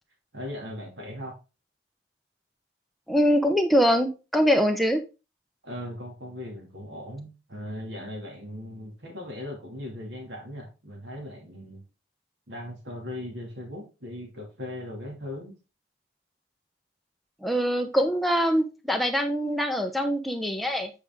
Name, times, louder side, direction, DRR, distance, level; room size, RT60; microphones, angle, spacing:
voice 1, 0.3-1.4 5.6-11.8 12.5-15.5, left 1 dB, 75° right, 1 dB, 2.5 m, -38 dB
voice 2, 3.1-5.0 17.4-20.9, equal, ahead, 4 dB, 0.8 m, -23 dB
8.2 x 4.9 x 3.7 m, 0.30 s
head